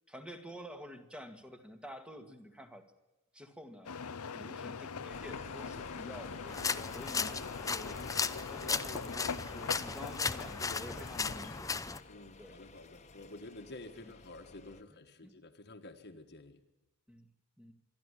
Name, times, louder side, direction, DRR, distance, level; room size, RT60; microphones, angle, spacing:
voice 1, 0.1-2.8 3.3-4.0 4.3-7.4 7.7-11.8 12.4-12.6 14.0-14.1 14.9-15.3 17.1-17.3 17.6-17.7, equal, 5° right, 7 dB, 2.0 m, -49 dB
sound 1, 3.8-11.6, left 5 dB, 85° left, 0.8 m, -42 dB
sound 2, 5.1-14.8, left 3 dB, 30° left, 1.5 m, -53 dB
sound 3, 6.5-12.0, left 4 dB, 15° left, 0.7 m, -36 dB
voice 2, 12.1-16.6, left 2 dB, 50° left, 4 dB, 1.6 m, -50 dB
26.5 x 12.0 x 9.8 m, 1.0 s
head